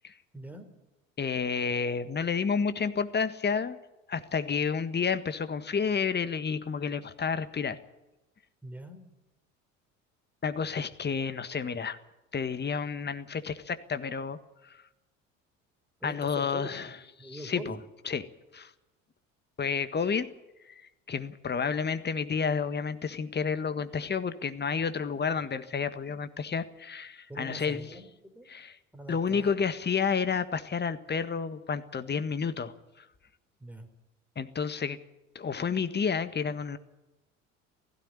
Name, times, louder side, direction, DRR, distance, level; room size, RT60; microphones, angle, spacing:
voice 1, 0.3-0.7 8.6-9.0 16.0-17.8 27.3-28.5 28.9-29.5 33.6-33.9, right 1 dB, 5° right, 7 dB, 3.9 m, -43 dB
voice 2, 1.2-3.8 4.1-7.8 10.4-12.0 12.3-14.4 14.6-14.8 16.0-16.9 17.3-17.8 18.0-18.3 18.5-18.7 19.6-20.3 21.1-27.9 28.5-28.7 29.1-33.0 34.3-35.0 35.3-36.8, left 6 dB, 25° left, 11 dB, 1.6 m, -30 dB
17.0 x 15.5 x 9.8 m, 1.0 s
figure-of-eight pair, 60°, 40 cm